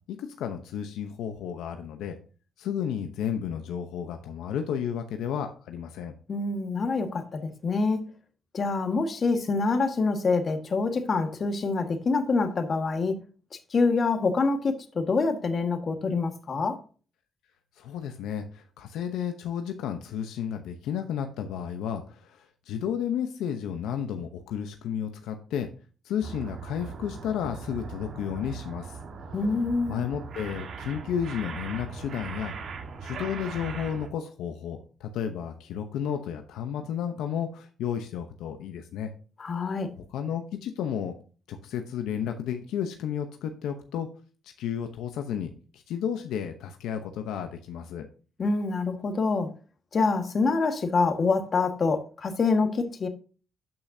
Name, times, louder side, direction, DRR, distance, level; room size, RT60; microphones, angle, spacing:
voice 1, 0.1-2.2 2.6-6.1 17.8-25.7 26.0-29.0 29.9-32.6 33.0-39.1 40.1-41.1 41.5-44.1 44.4-48.1, left 8 dB, 85° left, 0.9 m, -32 dB
voice 2, 6.3-8.1 8.5-13.2 13.7-16.8 29.3-30.0 39.4-39.9 48.4-49.5 49.9-53.1, left 4 dB, 45° left, 1.7 m, -26 dB
sound 1, 26.2-34.1, right 5 dB, 60° right, 1.6 m, -39 dB
12.5 x 5.7 x 2.8 m
cardioid pair, 80°, 0 cm